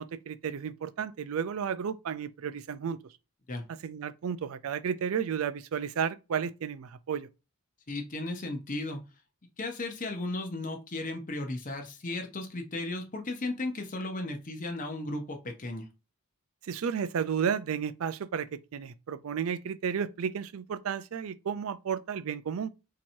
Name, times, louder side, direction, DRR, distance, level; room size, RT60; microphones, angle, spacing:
voice 1, 0.0-3.0 3.7-7.3 16.7-22.7, right 7 dB, 70° right, 0.4 m, -33 dB
voice 2, 7.9-9.0 9.6-15.8, left 2 dB, 35° left, 0.8 m, -35 dB
4.4 x 2.9 x 2.6 m
head